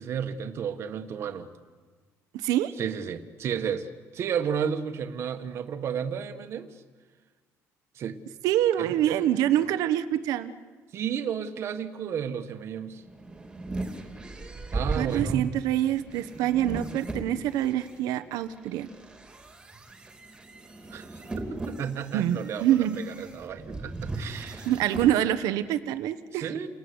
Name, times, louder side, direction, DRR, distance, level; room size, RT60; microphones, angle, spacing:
voice 1, 0.0-1.5 2.8-6.7 7.9-8.2 8.8-9.3 9.6-9.7 10.9-13.0 14.7-15.5 20.9-24.7 26.3-26.7, right 7 dB, 45° right, 7 dB, 1.6 m, -33 dB
voice 2, 2.3-2.7 8.4-10.5 15.0-18.9 22.1-23.0 24.7-26.6, right 12 dB, 85° right, 11 dB, 1.2 m, -26 dB
sound 1, 12.9-17.9 18.5-25.1, right 2 dB, 15° right, 3.1 m, -37 dB
29.5 x 19.5 x 9.7 m, 1.5 s
cardioid pair, 160°, 6 cm